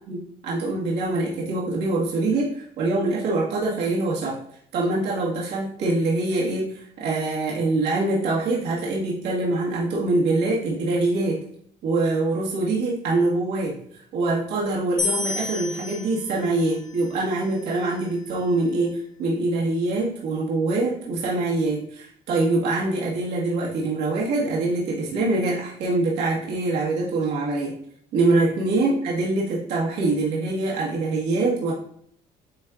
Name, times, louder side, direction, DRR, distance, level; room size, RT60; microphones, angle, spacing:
voice 1, 0.0-2.5 2.8-4.4 4.7-11.4 11.8-13.8 14.1-27.8 28.1-31.7, right 2 dB, 80° right, -6 dB, 1.8 m, -24 dB
sound 1, 15.0-18.2, left 4 dB, 50° left, 2.2 m, -32 dB
8.7 x 4.4 x 2.4 m, 0.65 s
cardioid pair, 110°, 17 cm